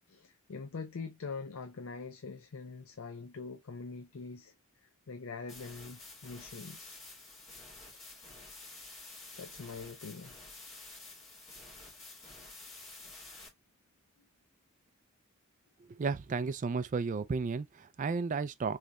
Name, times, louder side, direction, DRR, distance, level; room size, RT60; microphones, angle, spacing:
voice 1, 0.1-4.5 5.1-7.0 9.3-10.3, left 4 dB, 65° left, 0.5 m, -43 dB
sound 1, 5.5-13.5, left 2 dB, 30° left, 2.1 m, -50 dB
voice 2, 16.0-18.8, right 4 dB, 35° right, 0.3 m, -33 dB
3.9 x 3.2 x 2.3 m
head